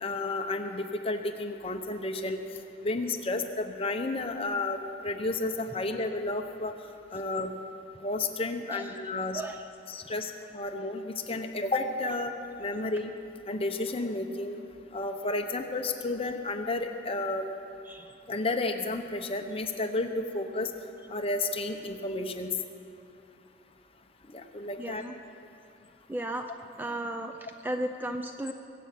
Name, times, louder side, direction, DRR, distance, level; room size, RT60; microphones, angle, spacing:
voice 1, 0.0-2.4 2.8-6.7 7.1-7.5 8.0-9.4 9.9-12.3 12.6-13.1 13.5-14.6 14.9-17.5 18.3-20.7 21.1-22.5 24.3-25.0, left 2 dB, 30° left, 5 dB, 0.9 m, -32 dB
voice 2, 24.8-25.1 26.1-26.4 26.8-28.5, right 1 dB, 10° right, 6 dB, 0.4 m, -35 dB
22.5 x 8.4 x 6.0 m, 2.5 s
head